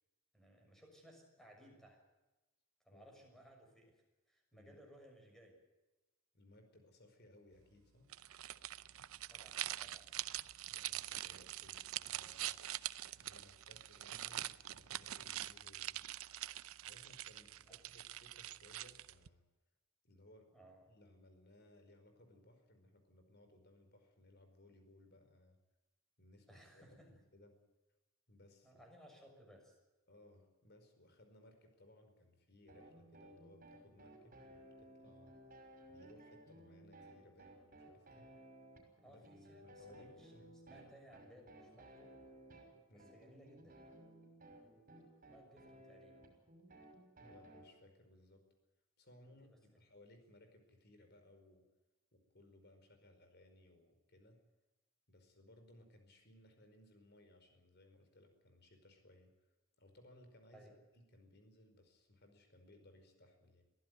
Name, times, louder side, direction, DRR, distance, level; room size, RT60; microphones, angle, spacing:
voice 1, 0.3-2.0 2.8-5.6 9.3-10.2 17.6-17.8 20.5-20.8 26.5-27.1 28.6-29.8 39.0-42.2 42.9-43.8 45.3-46.3 49.2-49.6 60.5-60.8, equal, ahead, 2 dB, 6.5 m, -62 dB
voice 2, 2.9-3.2 4.5-4.8 6.3-8.1 10.7-12.6 13.2-16.0 16.8-19.4 20.0-20.5 20.9-25.6 26.2-27.6 28.3-28.8 30.1-35.4 35.9-38.3 39.1-39.3 39.6-40.6 42.9-43.1 47.2-48.4 49.0-51.7 52.1-54.4 55.1-59.5 59.8-63.6, left 1 dB, 50° left, 6 dB, 5.0 m, -64 dB
sound 1, 8.1-19.3, right 13 dB, 80° right, 0.7 m, -44 dB
sound 2, 32.7-47.6, right 1 dB, 40° right, 6.0 m, -58 dB
23.0 x 15.5 x 9.5 m, 1.1 s
head